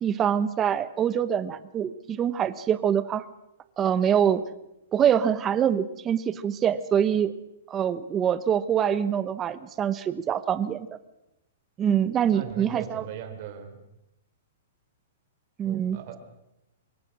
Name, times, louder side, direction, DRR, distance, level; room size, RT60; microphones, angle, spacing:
voice 1, 0.0-3.2 3.8-4.4 4.9-7.3 7.7-10.9 11.8-13.0 15.6-16.2, right 9 dB, 15° right, 14 dB, 1.0 m, -25 dB
voice 2, 12.3-13.8 15.6-16.2, right 8 dB, 40° right, 6 dB, 4.0 m, -39 dB
24.5 x 22.0 x 6.1 m, 0.88 s
hypercardioid pair, 165°, 0 cm